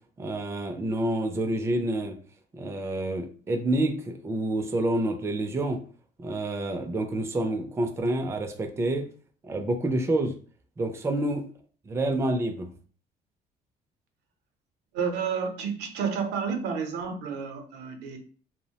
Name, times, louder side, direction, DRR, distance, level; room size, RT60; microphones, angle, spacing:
voice 1, 0.2-2.2 2.5-5.8 6.2-9.1 9.4-10.3 10.8-11.5 11.9-12.7, right 1 dB, 15° right, 4 dB, 0.4 m, -28 dB
voice 2, 14.9-18.2, right 6 dB, 85° right, 4 dB, 0.6 m, -30 dB
2.8 x 2.0 x 2.8 m, 0.43 s
cardioid pair, 110°, 17 cm